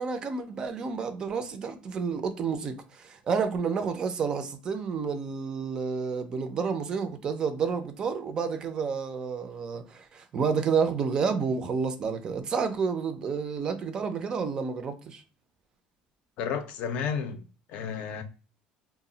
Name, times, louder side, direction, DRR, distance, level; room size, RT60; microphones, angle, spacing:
voice 1, 0.0-15.2, right 5 dB, 30° right, 0.3 m, -30 dB
voice 2, 16.4-17.4 17.7-18.2, left 7 dB, 55° left, 0.4 m, -32 dB
2.2 x 2.0 x 3.7 m
cardioid pair, 165°, 3 cm